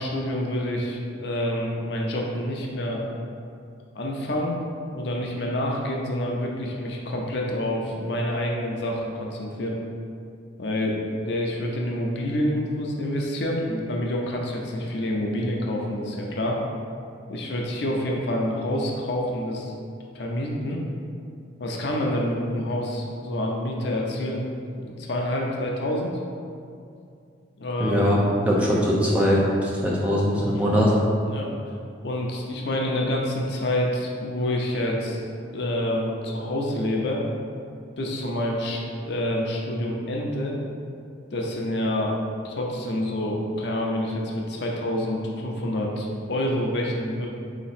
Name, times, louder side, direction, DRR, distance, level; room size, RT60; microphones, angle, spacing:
voice 1, 0.0-3.0 3.9-4.6 4.9-9.8 10.6-16.6 17.3-19.7 20.1-20.8 21.6-24.5 24.8-26.2 27.6-28.1 30.5-30.8 31.2-31.5 32.0-35.2 35.5-37.2 38.0-40.6 41.3-42.2 42.4-47.3, left 1 dB, 60° left, -1 dB, 0.5 m, -27 dB
voice 2, 27.8-28.2 28.4-31.0, equal, 5° right, -6 dB, 0.6 m, -21 dB
4.0 x 2.9 x 4.2 m, 2.4 s
head